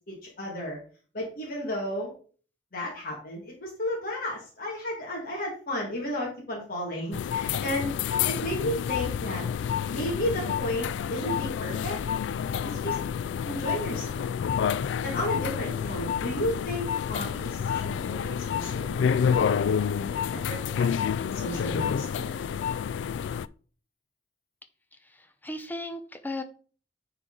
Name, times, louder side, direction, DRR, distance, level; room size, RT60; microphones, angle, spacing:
voice 1, 0.1-0.8 1.1-2.1 2.7-7.9 8.2-9.4 9.9-12.0 12.6-13.0 13.4-14.2 15.0-19.7 20.0-20.9 21.3-22.3, left 1 dB, 55° left, -3 dB, 2.1 m, -33 dB
sound 1, 7.1-23.5, left 7 dB, 85° left, 0.3 m, -29 dB
voice 2, 25.0-26.4, left 1 dB, 10° left, 8 dB, 0.8 m, -36 dB
9.8 x 4.6 x 3.9 m, 0.41 s
head